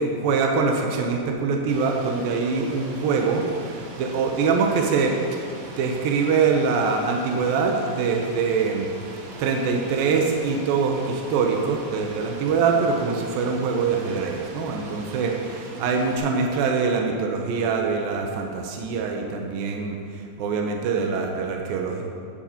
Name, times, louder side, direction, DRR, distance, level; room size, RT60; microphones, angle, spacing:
voice 1, 0.0-5.2 5.8-8.9 9.4-22.0, right 5 dB, 85° right, 2 dB, 2.6 m, -24 dB
Rain, 1.7-16.2, right 2 dB, 65° right, 1.5 m, -41 dB
18.0 x 7.7 x 2.9 m, 2.3 s
omnidirectional pair, 4.1 m